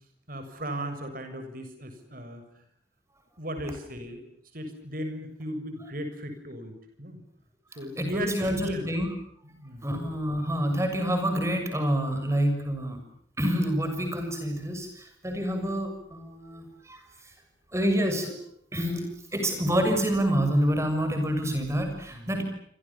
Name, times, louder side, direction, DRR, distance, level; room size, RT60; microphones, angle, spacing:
voice 1, 0.3-2.4 3.4-4.2 4.5-7.2 7.8-8.9 9.5-9.9 22.1-22.4, equal, 50° right, 7 dB, 6.9 m, -36 dB
voice 2, 8.0-9.1 9.8-13.0 13.4-17.0 17.7-18.4 18.7-19.1 19.3-22.4, equal, 15° right, 6 dB, 6.8 m, -27 dB
28.0 x 27.0 x 7.2 m, 0.67 s
head